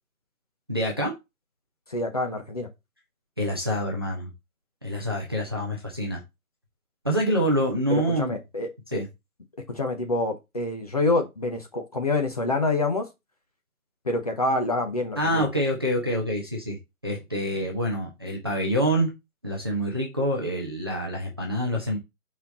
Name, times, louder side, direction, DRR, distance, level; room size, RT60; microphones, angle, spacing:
voice 1, 0.7-1.1 3.4-4.3 4.8-6.2 7.0-8.4 8.9-9.1 15.2-16.8 17.0-19.1 19.4-22.0, equal, 15° right, 0.7 m, -26 dB
voice 2, 1.9-2.7 7.9-9.0 9.7-13.0 14.0-15.5, left 2 dB, 25° left, 0.9 m, -27 dB
5.9 x 4.4 x 4.2 m
figure-of-eight pair, 160°, 45 cm